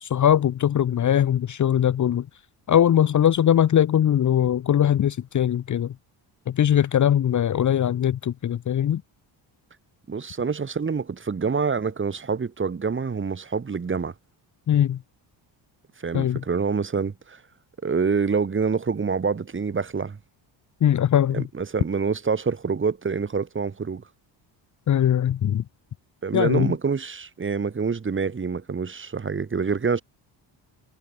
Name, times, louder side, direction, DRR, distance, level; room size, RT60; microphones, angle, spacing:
voice 1, 0.0-2.3 2.7-5.9 6.5-9.0 14.7-15.0 16.1-16.4 20.8-21.4 24.9-25.6 26.3-26.7, left 10 dB, 40° left, 0.9 m, -21 dB
voice 2, 10.1-14.1 16.0-17.4 17.8-20.2 21.3-24.0 26.2-30.0, right 5 dB, 25° right, 2.7 m, -26 dB
cardioid pair, 135°, 46 cm